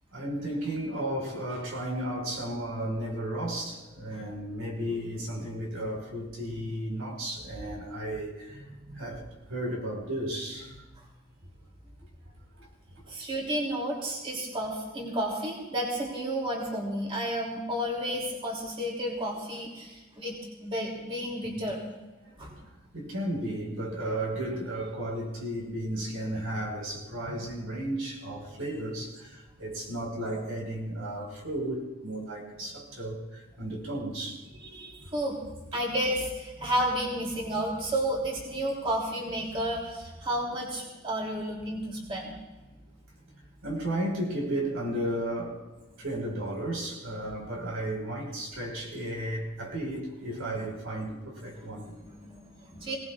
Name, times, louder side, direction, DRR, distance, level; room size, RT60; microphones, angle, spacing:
voice 1, 0.1-8.6 8.9-10.7 12.6-12.7 22.2-22.3 22.9-34.4 43.6-45.6 46.0-51.9, right 1 dB, 75° right, 4.7 m, -34 dB
voice 2, 8.7-9.0 11.0-11.1 13.1-20.4 20.6-21.8 22.4-22.5 27.3-27.5 34.6-35.4 35.7-42.4 51.5-53.0, equal, 25° right, 3.0 m, -32 dB
27.5 x 18.5 x 2.4 m
head